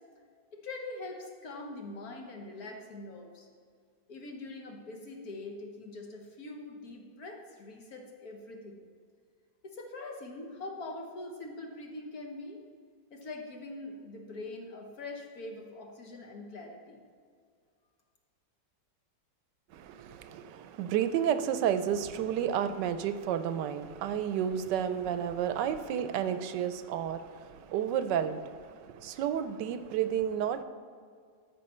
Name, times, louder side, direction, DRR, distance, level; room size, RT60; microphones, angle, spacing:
voice 1, 0.5-3.5 4.1-8.8 9.6-12.6 13.1-17.0, left 2 dB, 60° left, 1 dB, 1.6 m, -43 dB
voice 2, 19.7-30.6, right 9 dB, 85° right, 11 dB, 1.2 m, -31 dB
13.0 x 5.6 x 4.3 m, 2.1 s
omnidirectional pair, 1.9 m